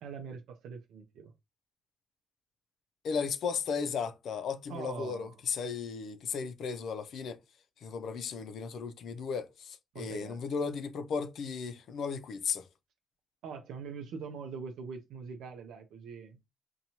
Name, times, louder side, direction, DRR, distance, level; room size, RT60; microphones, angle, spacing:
voice 1, 0.0-1.3 4.7-5.3 9.9-10.4 13.4-16.4, right 5 dB, 85° right, 0.4 m, -43 dB
voice 2, 3.0-7.4 7.8-12.7, left 6 dB, 65° left, 0.4 m, -35 dB
2.7 x 2.2 x 2.9 m
cardioid pair, 90°, 0 cm